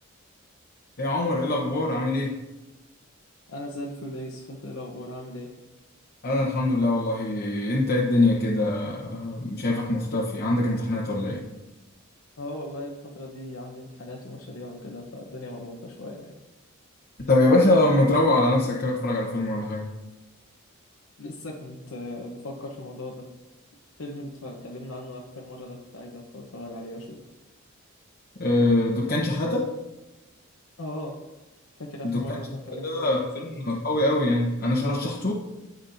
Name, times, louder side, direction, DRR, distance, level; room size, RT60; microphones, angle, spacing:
voice 1, 1.0-2.3 6.2-11.4 17.3-19.9 28.4-29.7 32.0-32.4 32.8-35.3, left 2 dB, 50° left, -4 dB, 1.0 m, -23 dB
voice 2, 3.5-5.5 12.4-16.4 21.2-23.2 24.0-27.2 30.8-31.1 31.8-33.2, left 1 dB, 90° left, -1 dB, 1.0 m, -38 dB
13.5 x 5.3 x 2.7 m, 1.1 s
head